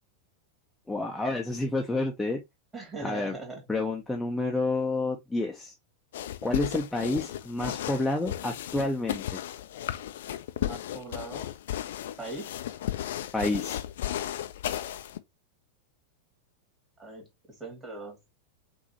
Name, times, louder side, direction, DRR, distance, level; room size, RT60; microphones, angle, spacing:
voice 1, 0.9-2.4 3.0-3.3 3.7-5.7 6.4-9.2 13.3-13.8, left 2 dB, 5° left, 0.7 m, -29 dB
voice 2, 2.7-3.7 10.6-11.5 12.2-12.5 17.0-18.3, right 2 dB, 15° right, 2.3 m, -40 dB
sound 1, 6.1-15.2, left 12 dB, 60° left, 0.5 m, -34 dB
5.9 x 2.7 x 2.8 m
figure-of-eight pair, 90°, 0 cm